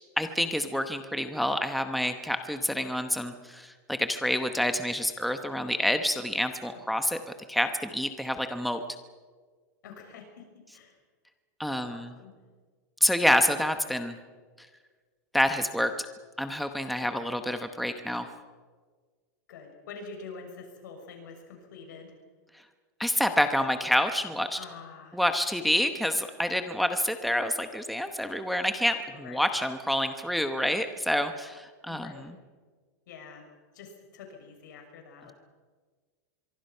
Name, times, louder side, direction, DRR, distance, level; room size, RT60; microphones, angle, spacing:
voice 1, 0.2-7.2 7.5-8.8 11.6-12.1 13.0-14.2 15.3-16.1 16.4-18.3 23.0-24.6 25.1-32.4, equal, ahead, 7 dB, 0.9 m, -28 dB
voice 2, 9.8-11.0 11.7-12.3 17.0-17.2 19.5-22.1 24.6-25.2 29.1-29.5 31.9-32.3 33.1-33.5 33.7-35.3, left 5 dB, 90° left, 4 dB, 6.4 m, -46 dB
24.5 x 23.5 x 5.6 m, 1.5 s
supercardioid pair, 170°, 10 cm